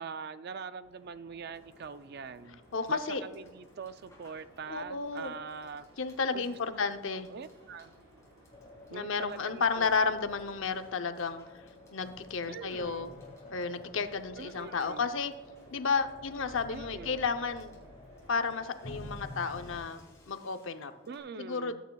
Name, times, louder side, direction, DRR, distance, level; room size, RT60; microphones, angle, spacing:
voice 1, 0.0-2.6 2.9-5.9 6.3-7.9 8.9-10.1 12.5-13.1 14.4-15.0 16.7-17.3 21.1-21.8, right 5 dB, 50° right, 12 dB, 0.4 m, -43 dB
sound 1, 0.8-20.1, right 1 dB, 75° right, 3.5 m, -61 dB
Water / Water tap faucet / Sink (filling or washing), 1.5-21.2, left 1 dB, 15° left, 3.8 m, -63 dB
voice 2, 2.7-3.2 4.7-5.3 6.0-7.3 8.9-11.4 11.9-13.1 13.5-15.3 15.7-17.7 18.3-20.9 21.4-21.8, left 5 dB, 65° left, 8 dB, 0.7 m, -32 dB
sound 2, 8.5-19.8, left 1 dB, 35° left, 2.0 m, -50 dB
20.0 x 9.1 x 2.3 m, 1.2 s
head